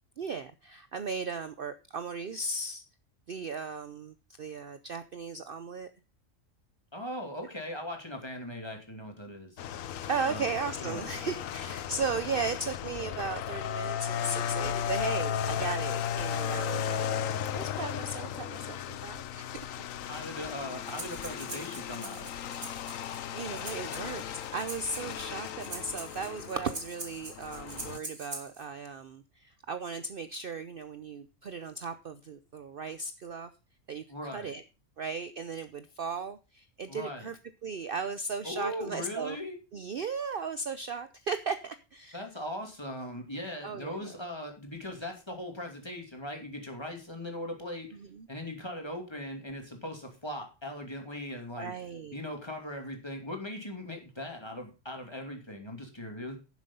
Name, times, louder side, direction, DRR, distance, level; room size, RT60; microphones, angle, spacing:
voice 1, 0.2-2.8 3.3-5.9 10.1-17.3 17.5-19.7 20.0-20.1 22.8-23.0 23.3-33.5 33.9-34.0 34.3-34.6 35.0-39.4 39.7-42.2 43.6-44.1 48.1-48.3 51.6-52.2, right 4 dB, 50° right, 11 dB, 0.8 m, -36 dB
voice 2, 6.9-9.6 10.3-10.5 10.8-11.1 20.1-22.3 34.1-34.5 36.9-37.3 38.4-39.6 42.1-48.0 48.3-51.7 52.1-56.4, left 1 dB, 20° left, 3 dB, 2.6 m, -39 dB
sound 1, 9.6-28.0, left 9 dB, 75° left, 1.1 m, -35 dB
Breathing, 20.8-28.6, right 2 dB, 30° right, 2.2 m, -44 dB
11.0 x 7.5 x 5.4 m, 0.31 s
omnidirectional pair, 1.4 m